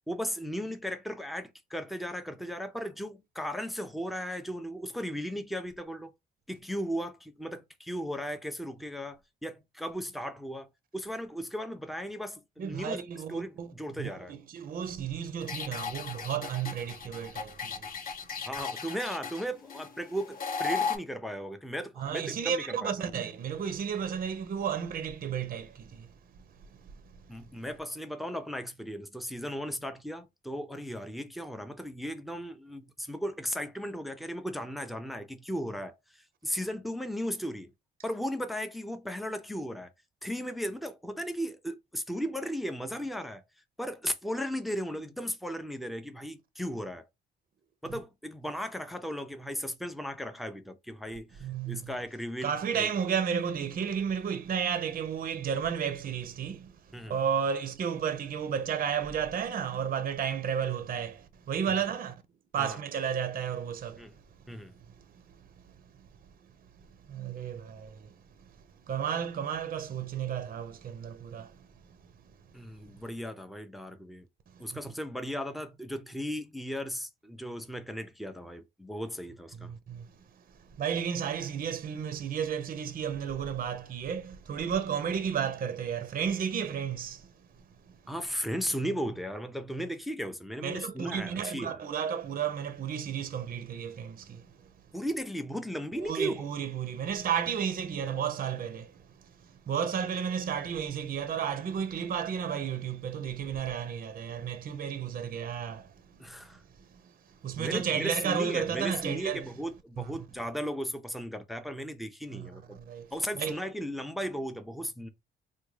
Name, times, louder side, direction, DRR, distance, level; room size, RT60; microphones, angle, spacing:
voice 1, 0.1-6.1 6.5-14.3 18.5-22.9 27.3-37.7 38.0-39.9 40.2-43.4 43.8-47.0 47.8-52.5 52.8-52.9 56.9-57.2 61.7-61.8 62.6-62.8 64.0-64.1 64.5-64.7 72.5-74.3 74.6-79.7 88.1-91.8 94.9-96.5 106.2-106.6 107.6-112.8 113.1-115.1, equal, ahead, 0.5 m, -36 dB
voice 2, 12.6-13.7 14.0-17.9 22.0-26.1 51.4-51.9 52.4-62.2 62.5-64.5 65.0-65.3 66.0-66.1 67.1-68.2 68.9-71.6 74.5-74.8 79.6-80.1 80.8-87.3 87.9-88.0 90.6-94.7 96.0-106.2 106.9-107.1 107.4-109.5 110.0-110.1 112.3-113.1 113.4-113.6, right 8 dB, 45° right, 0.6 m, -33 dB
sound 1, 15.4-21.0, left 5 dB, 45° left, 0.7 m, -36 dB
3.5 x 2.2 x 3.1 m
cardioid pair, 90°, 20 cm